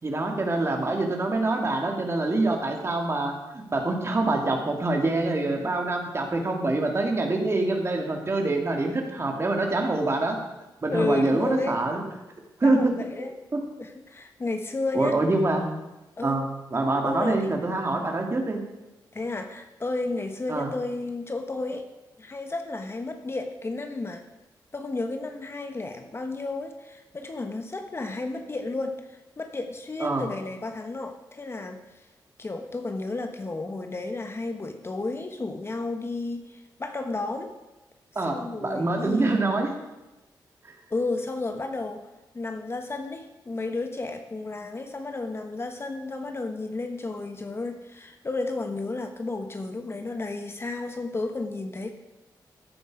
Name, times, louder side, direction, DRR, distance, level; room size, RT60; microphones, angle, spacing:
voice 1, 0.0-10.4 10.8-12.0 12.6-12.9 13.5-13.6 14.9-15.7 16.2-18.6 20.5-20.7 30.0-30.3 38.1-39.7 40.6-40.7, right 2 dB, 35° right, 2 dB, 2.5 m, -25 dB
voice 2, 10.9-11.8 12.6-13.3 13.8-15.2 16.2-16.4 17.0-17.6 19.1-21.9 22.2-24.2 24.7-31.8 32.4-37.5 38.3-39.5 40.9-42.0 42.3-51.9, left 2 dB, 30° left, 6 dB, 1.2 m, -32 dB
14.5 x 8.4 x 4.9 m, 1.0 s
cardioid pair, 85°, 8 cm